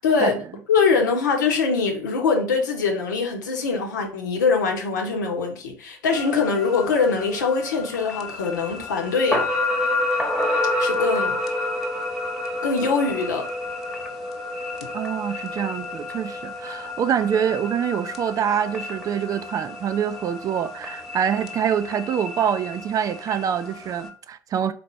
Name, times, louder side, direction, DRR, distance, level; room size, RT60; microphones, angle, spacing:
voice 1, 0.0-0.4 0.7-9.5 10.8-11.4 12.6-13.5, left 4 dB, 70° left, 1.0 m, -23 dB
sound 1, 6.1-24.1, left 2 dB, ahead, 1.1 m, -30 dB
voice 2, 14.9-24.7, right 8 dB, 35° right, 0.4 m, -25 dB
4.2 x 2.9 x 4.3 m
figure-of-eight pair, 60°, 10 cm